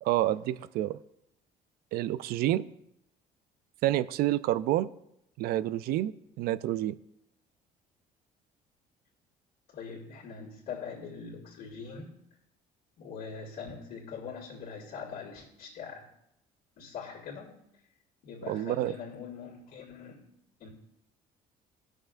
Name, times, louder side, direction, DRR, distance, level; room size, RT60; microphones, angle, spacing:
voice 1, 0.0-1.0 1.9-2.7 3.8-4.9 5.4-6.1 6.4-7.0 18.5-18.9, right 14 dB, 70° right, 17 dB, 0.4 m, -28 dB
voice 2, 9.7-12.2 13.0-16.1 16.8-17.6 18.2-20.3 20.6-20.7, left 5 dB, 70° left, -5 dB, 2.2 m, -42 dB
14.5 x 6.3 x 2.6 m, 0.80 s
cardioid pair, 95°, 16 cm